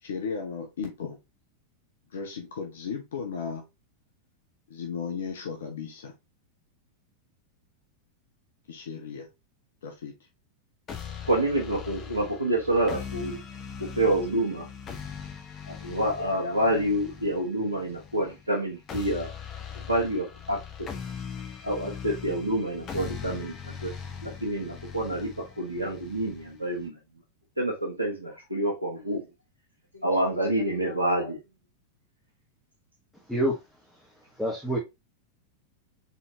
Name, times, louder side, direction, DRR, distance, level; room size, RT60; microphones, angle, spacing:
voice 1, 0.0-1.2 2.1-3.6 4.7-6.1 8.7-9.3 9.8-10.1, left 6 dB, 60° left, 0.9 m, -35 dB
sound 1, 10.9-26.9, left 7 dB, 25° left, 1.0 m, -41 dB
voice 2, 11.3-13.4 14.0-14.6 15.8-19.3 19.9-20.6 21.6-23.5 23.8-23.9 24.2-25.3 25.6-26.9 27.6-29.2 30.0-31.4, right 1 dB, 85° right, 1.1 m, -27 dB
voice 3, 34.4-34.8, equal, ahead, 1.2 m, -26 dB
4.2 x 3.8 x 2.8 m
figure-of-eight pair, 90°, 0 cm